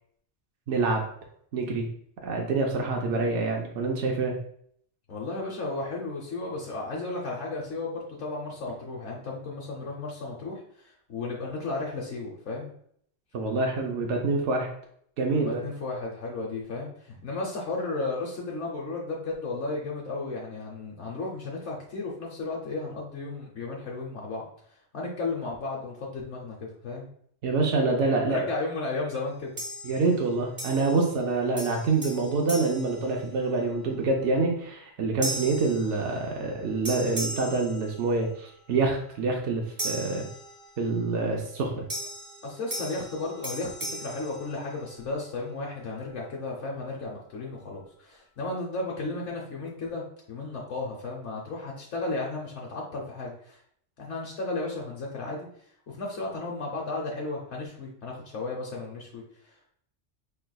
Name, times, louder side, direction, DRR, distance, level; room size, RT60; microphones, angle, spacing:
voice 1, 0.7-1.0 1.5-1.9 2.2-4.4 13.3-14.7 15.2-15.6 27.4-28.5 29.8-40.3 40.8-41.8, right 3 dB, 80° right, 1 dB, 1.0 m, -26 dB
voice 2, 5.1-12.7 15.3-24.4 24.9-27.1 28.0-29.5 42.4-53.6 54.0-55.5 55.9-59.7, left 3 dB, 75° left, -2 dB, 1.1 m, -34 dB
sound 1, 29.6-30.2 30.6-31.3 31.6-33.7 34.2-34.5 35.2-36.5 36.8-38.5 39.8-41.0 41.9-45.1, right 1 dB, 30° right, 0.9 m, -38 dB
4.8 x 3.3 x 2.3 m, 0.65 s
omnidirectional pair, 1.2 m